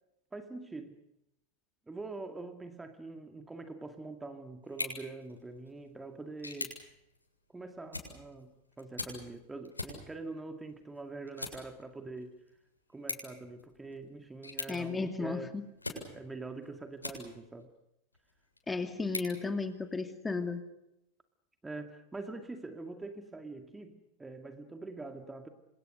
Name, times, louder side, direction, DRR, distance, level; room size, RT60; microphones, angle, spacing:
voice 1, 0.3-1.0 1.9-6.8 7.5-12.4 12.9-15.6 15.9-17.7 21.6-25.5, right 3 dB, 10° right, 6 dB, 2.3 m, -44 dB
sound 1, 4.6-17.6 18.1-20.2, left 2 dB, 85° left, 7.5 m, -45 dB
voice 2, 14.7-15.6 18.7-20.6, left 3 dB, 10° left, 7 dB, 2.5 m, -34 dB
29.5 x 26.5 x 6.7 m, 0.86 s
figure-of-eight pair, 90°, 0 cm